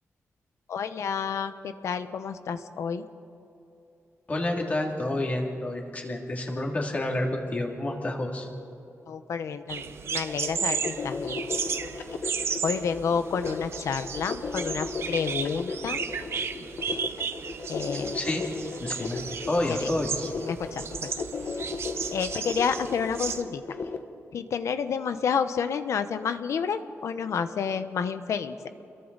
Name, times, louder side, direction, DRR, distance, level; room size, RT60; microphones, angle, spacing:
voice 1, 0.7-3.1 9.1-11.6 12.6-16.0 17.7-18.1 19.7-19.9 20.4-20.8 22.1-23.6 24.3-28.7, left 6 dB, 75° left, 10 dB, 1.0 m, -30 dB
voice 2, 4.3-8.5 18.1-18.4 18.8-19.2 19.4-20.3, left 1 dB, 30° left, 0 dB, 2.6 m, -29 dB
sound 1, 9.7-23.4, right 6 dB, 55° right, 1.0 m, -34 dB
sound 2, 10.3-24.0, left 4 dB, 55° left, 1.3 m, -35 dB
29.0 x 22.5 x 4.1 m, 2.8 s
wide cardioid pair, 155°, 5 cm